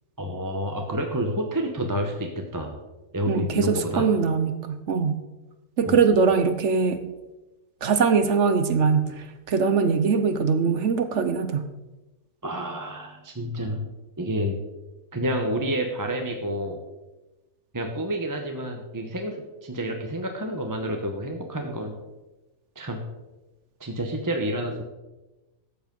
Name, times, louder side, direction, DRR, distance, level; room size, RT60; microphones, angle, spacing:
voice 1, 0.2-2.8 3.1-4.1 5.9-6.0 12.4-13.9 14.2-14.6 15.1-16.8 17.7-22.0 22.8-23.0 23.8-24.8, equal, 15° right, 3 dB, 0.8 m, -29 dB
voice 2, 3.3-5.2 5.8-7.0 7.8-11.7, right 5 dB, 60° right, 10 dB, 1.0 m, -22 dB
13.0 x 7.5 x 5.3 m, 1.1 s
omnidirectional pair, 1.6 m